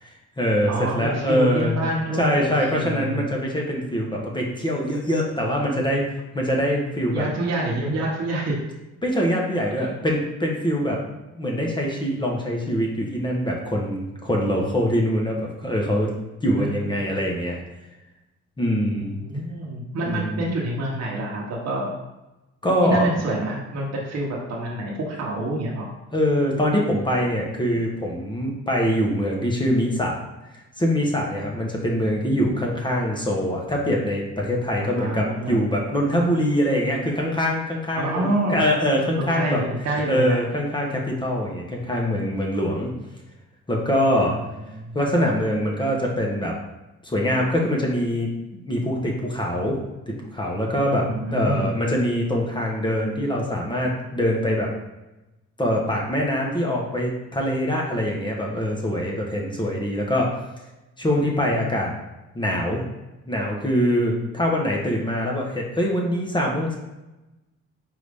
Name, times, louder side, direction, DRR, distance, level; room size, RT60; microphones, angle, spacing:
voice 1, 0.0-1.7 2.2-6.1 6.3-7.3 9.0-11.0 11.4-16.1 16.4-17.6 18.6-19.2 20.0-20.4 22.6-23.1 26.1-30.2 30.8-39.6 40.1-42.9 43.7-44.4 44.9-46.5 47.0-49.8 50.1-54.7 55.6-60.3 61.0-61.9 62.3-62.8 63.3-66.8, equal, 15° left, -2 dB, 1.0 m, -23 dB
voice 2, 0.7-3.3 7.1-8.6 9.8-10.0 16.6-17.1 18.9-21.9 22.8-25.9 32.0-32.1 34.8-35.6 38.0-38.7 39.2-40.4 44.8-45.0 50.8-51.7, right 1 dB, 60° right, -3 dB, 1.0 m, -27 dB
4.8 x 2.6 x 3.5 m, 1.0 s
cardioid pair, 90°, 30 cm